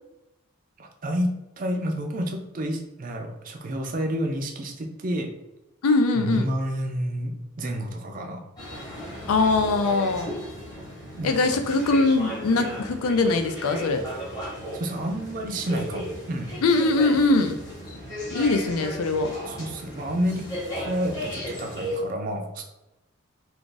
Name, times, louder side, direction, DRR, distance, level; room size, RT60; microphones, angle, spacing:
voice 1, 0.8-5.3 6.1-8.4 11.2-11.6 14.7-16.6 19.5-20.5 20.8-22.6, equal, 40° right, 3 dB, 0.4 m, -29 dB
voice 2, 5.8-6.5 9.3-10.3 11.2-14.0 16.6-17.6 18.3-19.3, left 3 dB, 85° left, 7 dB, 0.4 m, -22 dB
sound 1, 8.6-22.0, equal, 15° left, 0.9 m, -35 dB
2.4 x 2.4 x 3.8 m, 0.94 s
head